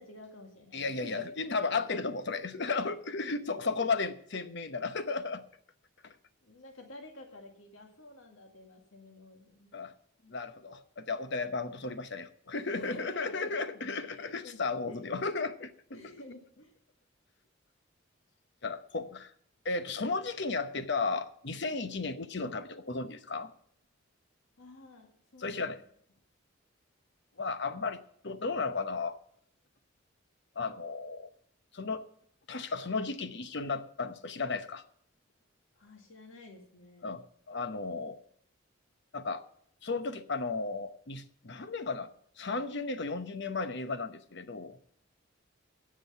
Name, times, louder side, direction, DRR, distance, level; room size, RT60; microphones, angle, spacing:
voice 1, 0.0-1.9 3.2-3.4 6.4-9.8 10.2-10.4 12.7-15.1 15.9-16.8 24.6-25.8 35.8-37.1, left 1 dB, 85° left, 3 dB, 2.1 m, -50 dB
voice 2, 0.7-5.4 6.0-6.1 9.7-9.9 10.3-15.7 18.6-19.3 19.6-23.5 25.4-25.8 27.4-28.0 28.2-29.2 30.6-31.3 31.7-32.0 32.5-34.8 37.0-38.2 39.1-39.4 39.8-42.1 42.4-44.8, left 4 dB, 60° left, 11 dB, 0.9 m, -34 dB
17.0 x 6.3 x 5.6 m, 0.64 s
head